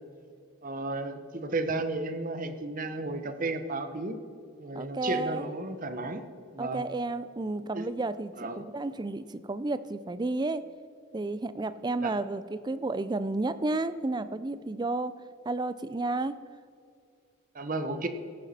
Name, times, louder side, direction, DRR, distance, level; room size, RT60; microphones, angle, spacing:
voice 1, 0.6-4.2 4.6-6.2 6.5-6.8 7.7-7.9 8.4-8.6 12.0-12.1 17.5-18.1, right 2 dB, 40° right, 9 dB, 0.9 m, -33 dB
voice 2, 4.7-5.4 6.6-10.6 11.1-15.1 15.5-16.4, right 2 dB, 20° right, 14 dB, 0.4 m, -32 dB
16.0 x 9.3 x 4.2 m, 2.3 s
head